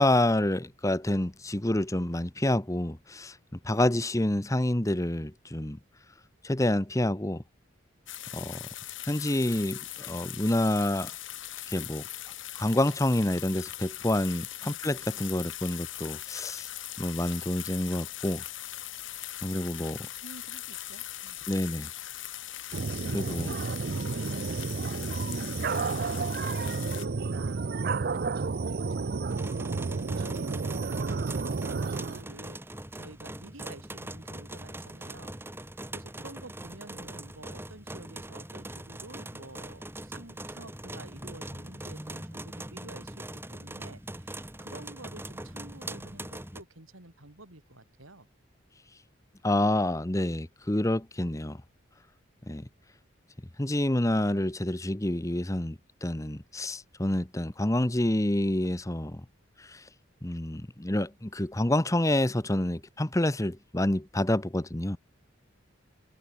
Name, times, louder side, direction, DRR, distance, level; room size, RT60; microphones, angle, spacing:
voice 1, 0.0-3.4 3.6-5.8 6.4-7.4 8.3-8.6 9.0-11.1 11.7-12.0 12.6-16.7 17.0-18.4 19.4-20.1 21.5-21.9 23.1-23.5 49.4-51.6 52.5-52.7 53.6-59.2 59.6-59.8 60.2-65.0, left 1 dB, 15° left, 1.0 m, -28 dB
sound 1, 8.1-27.1, left 13 dB, 70° left, 3.2 m, -40 dB
voice 2, 20.2-21.4 22.8-24.6 25.1-35.3 35.6-48.3, right 2 dB, 90° right, 4.8 m, -49 dB
sound 2, 22.7-32.2, right 4 dB, 50° right, 0.5 m, -31 dB
sound 3, 29.3-46.6, right 1 dB, 10° right, 4.0 m, -42 dB
head